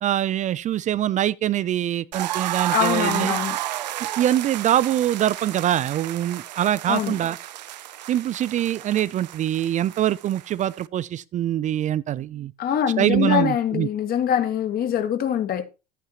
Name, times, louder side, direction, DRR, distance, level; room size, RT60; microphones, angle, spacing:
voice 1, 0.0-3.4 4.2-7.4 8.1-12.5 13.0-13.9, right 12 dB, 35° right, 0.6 m, -24 dB
sound 1, 2.1-10.9, right 13 dB, 80° right, 0.7 m, -31 dB
voice 2, 2.7-3.6 6.9-7.1 12.6-15.6, left 9 dB, 45° left, 2.2 m, -23 dB
13.0 x 9.2 x 3.0 m
hypercardioid pair, 80°, 21 cm